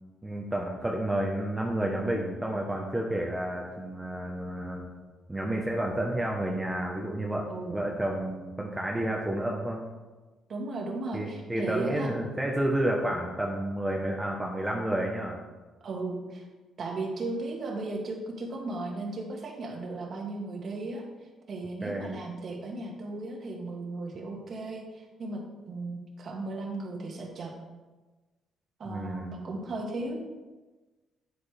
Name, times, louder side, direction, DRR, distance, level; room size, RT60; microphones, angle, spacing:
voice 1, 0.2-4.8 5.3-9.8 11.1-15.4 21.8-22.1 28.9-29.3, right 1 dB, 10° right, -1 dB, 1.2 m, -30 dB
voice 2, 7.5-7.9 10.5-12.1 15.8-16.5 16.8-21.0 21.5-27.5 28.8-30.2, right 2 dB, 50° right, 1 dB, 1.9 m, -36 dB
8.6 x 8.3 x 3.5 m, 1.2 s
cardioid pair, 90°, 0 cm